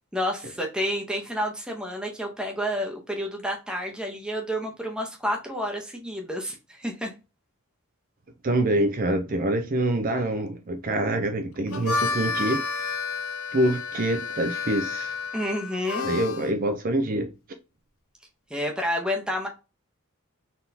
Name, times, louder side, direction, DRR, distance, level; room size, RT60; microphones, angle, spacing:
voice 1, 0.1-7.1 15.3-16.1 18.5-19.5, equal, 5° right, 0.9 m, -30 dB
voice 2, 8.4-12.6 13.5-15.2 16.0-17.3, right 1 dB, 40° right, 0.5 m, -25 dB
Harmonica, 11.6-16.5, left 4 dB, 80° left, 0.6 m, -30 dB
4.1 x 3.6 x 2.8 m
head